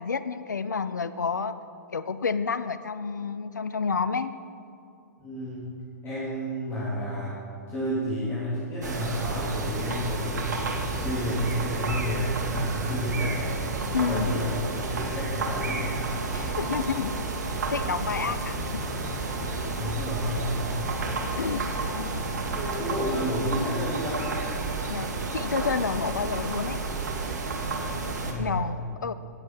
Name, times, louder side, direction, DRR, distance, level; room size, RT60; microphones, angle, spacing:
voice 1, 0.0-1.5 1.9-4.3 13.9-14.3 16.3-17.1 17.5-18.7 19.6-20.0 21.4-21.6 22.0-22.1 24.9-26.8 28.4-29.1, left 5 dB, 80° left, 13 dB, 0.5 m, -30 dB
voice 2, 5.2-5.7 6.0-7.3 7.7-13.4 13.9-15.9 19.8-20.5 22.5-24.3 28.2-28.6, equal, 25° left, -9 dB, 3.8 m, -31 dB
sound 1, 8.8-28.3, right 3 dB, 70° right, 2.1 m, -31 dB
sound 2, 10.6-22.6, left 3 dB, 45° left, 2.4 m, -43 dB
19.0 x 8.2 x 6.0 m, 2.6 s
figure-of-eight pair, 110°, 10 cm